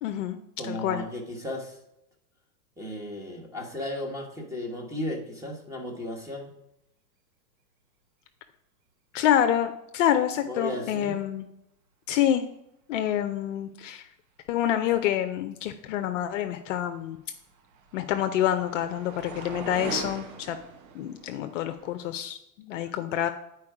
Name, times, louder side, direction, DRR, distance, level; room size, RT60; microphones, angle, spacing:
voice 1, 0.0-0.4 0.7-1.0 9.1-11.5 12.1-12.4 12.9-14.1 14.5-17.2 17.9-20.6 20.9-23.3, left 11 dB, 50° left, 8 dB, 0.6 m, -27 dB
voice 2, 0.6-1.8 2.8-6.5 10.5-11.2 22.8-22.9, left 1 dB, 5° right, 2 dB, 1.0 m, -35 dB
sound 1, 16.9-22.2, right 5 dB, 55° right, 1.1 m, -41 dB
8.4 x 4.6 x 4.8 m, 0.85 s
hypercardioid pair, 130°, 50 cm